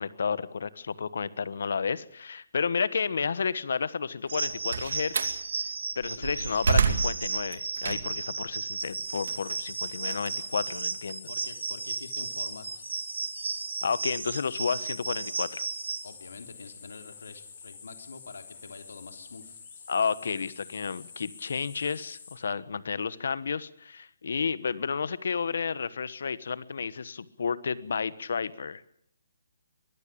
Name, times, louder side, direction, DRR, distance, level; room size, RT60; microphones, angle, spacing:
voice 1, 0.0-5.4 6.0-11.3 13.8-15.6 19.9-28.8, left 5 dB, 70° left, 17 dB, 1.2 m, -31 dB
Slam, 4.3-5.4 6.0-8.3 8.7-11.1, right 5 dB, 65° right, 2.5 m, -29 dB
sound 1, 4.3-16.1, right 4 dB, 90° right, 3.2 m, -34 dB
voice 2, 6.0-6.7 11.3-12.9 16.0-19.6, left 4 dB, 85° left, 6 dB, 3.5 m, -46 dB
sound 2, 8.8-22.4, left 6 dB, 40° left, 7.4 m, -48 dB
23.0 x 15.0 x 8.6 m, 0.66 s
hypercardioid pair, 165°, 0 cm